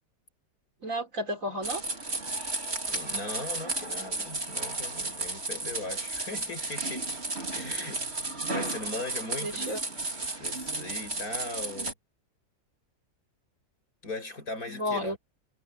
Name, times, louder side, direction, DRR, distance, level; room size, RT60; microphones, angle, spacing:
voice 1, 0.8-1.8 9.4-9.8 14.7-15.2, equal, 65° right, 4.5 m, -32 dB
sound 1, 1.6-11.9, right 2 dB, 45° right, 3.4 m, -33 dB
voice 2, 2.9-7.1 7.5-8.0 8.5-10.0 10.4-11.9 14.0-15.2, left 2 dB, 85° left, 8.0 m, -39 dB
omnidirectional pair, 1.5 m